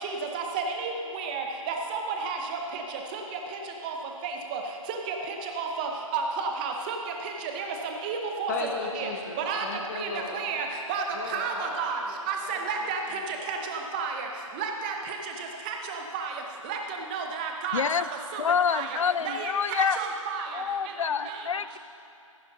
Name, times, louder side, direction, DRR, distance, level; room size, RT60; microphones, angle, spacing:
voice 1, 0.3-2.4 2.7-2.8 3.1-3.4 3.8-3.9 4.2-4.6 4.9-5.2 5.6-7.0 7.2-7.7 8.0-8.5 8.9-9.1 9.5-9.7 10.0-10.1 10.3-11.0 11.3-12.0 12.3-13.0 13.5-14.3 14.6-15.2 15.7-16.3 16.7-16.8 17.1-17.8 18.3-18.4 18.7-18.9 19.2-20.5 21.3-21.4, right 5 dB, 15° right, 3 dB, 0.7 m, -31 dB
voice 2, 8.5-10.4 11.1-13.5, left 3 dB, 30° left, -1 dB, 1.2 m, -37 dB
voice 3, 17.7-18.0 18.4-20.0 20.5-21.8, left 7 dB, 65° left, 16 dB, 0.4 m, -27 dB
15.0 x 10.5 x 3.9 m, 2.7 s
figure-of-eight pair, 155°, 18 cm